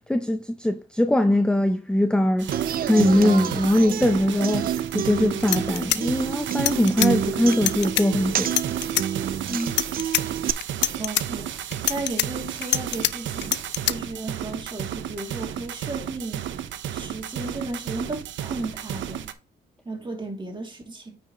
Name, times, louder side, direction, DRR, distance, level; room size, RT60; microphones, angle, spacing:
voice 1, 0.1-2.5 2.8-8.5, left 1 dB, 5° left, 0.6 m, -21 dB
sound 1, 2.4-19.3, right 10 dB, 70° right, 0.9 m, -33 dB
Human voice / Acoustic guitar, 2.5-10.5, right 9 dB, 50° right, 0.4 m, -29 dB
sound 2, 5.1-5.2 5.4-7.1 7.5-8.0 8.4-9.1 9.6-10.2 10.6-11.2 11.7-13.1 13.4-13.9, left 12 dB, 65° left, 0.5 m, -24 dB
voice 2, 9.4-9.8 11.0-16.6 16.9-19.3 19.9-21.2, right 2 dB, 25° right, 2.6 m, -34 dB
8.9 x 6.0 x 3.0 m
cardioid pair, 90°, 20 cm